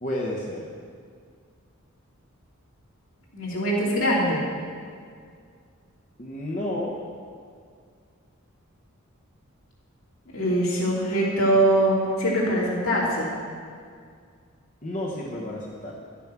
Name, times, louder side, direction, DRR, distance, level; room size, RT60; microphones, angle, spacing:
voice 1, 0.0-0.7 6.2-7.0 14.8-15.9, left 1 dB, 35° left, -4 dB, 1.0 m, -31 dB
voice 2, 3.3-4.4 10.3-13.3, right 1 dB, 70° left, -5 dB, 2.9 m, -22 dB
12.0 x 7.1 x 6.0 m, 2.2 s
head